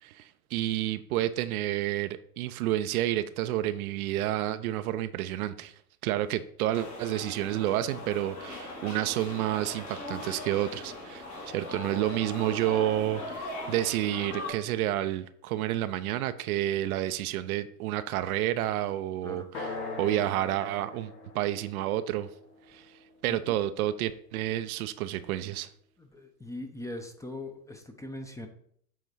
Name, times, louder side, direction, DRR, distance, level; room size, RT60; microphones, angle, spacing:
voice 1, 0.0-5.7 6.0-19.7 20.0-22.3 22.7-22.8 23.2-25.7, right 13 dB, 65° right, 0.7 m, -30 dB
sound 1, 6.7-14.5, left 2 dB, 60° left, 3.1 m, -40 dB
sound 2, 19.5-23.5, left 3 dB, 90° left, 2.9 m, -41 dB
voice 2, 26.0-28.5, left 1 dB, 5° left, 0.7 m, -40 dB
7.9 x 4.0 x 4.7 m
hypercardioid pair, 105°, 46 cm